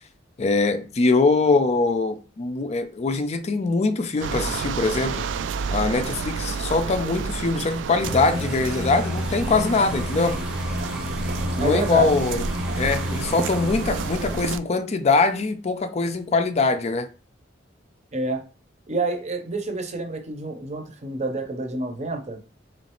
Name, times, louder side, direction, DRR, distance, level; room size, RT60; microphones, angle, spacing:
voice 1, 0.4-5.3 5.7-10.4 11.6-12.4 12.7-17.1, left 3 dB, 35° left, 0.4 m, -22 dB
sound 1, 4.2-14.6, right 5 dB, 75° right, 0.3 m, -30 dB
sound 2, 8.0-14.5, left 1 dB, 5° right, 0.8 m, -30 dB
voice 2, 11.6-12.1 18.1-18.4 18.9-22.4, right 2 dB, 40° right, 0.7 m, -28 dB
3.9 x 3.1 x 3.0 m
head